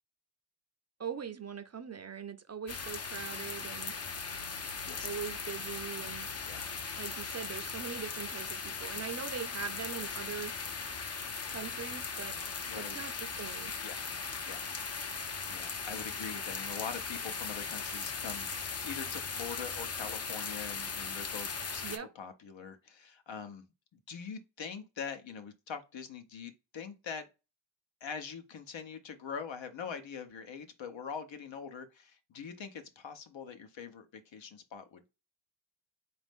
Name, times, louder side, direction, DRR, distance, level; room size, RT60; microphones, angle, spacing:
voice 1, 1.0-3.9 5.0-6.3 7.0-10.5 11.5-12.4 12.8-13.7 21.8-22.1, right 7 dB, 35° right, 0.4 m, -41 dB
sound 1, 2.7-22.0, left 5 dB, 35° left, 0.5 m, -38 dB
voice 2, 12.7-13.0 13.8-14.1 14.5-14.7 15.5-23.7 23.9-27.3 28.0-35.1, left 6 dB, 75° left, 0.9 m, -43 dB
4.1 x 2.6 x 3.5 m
wide cardioid pair, 125°, 46 cm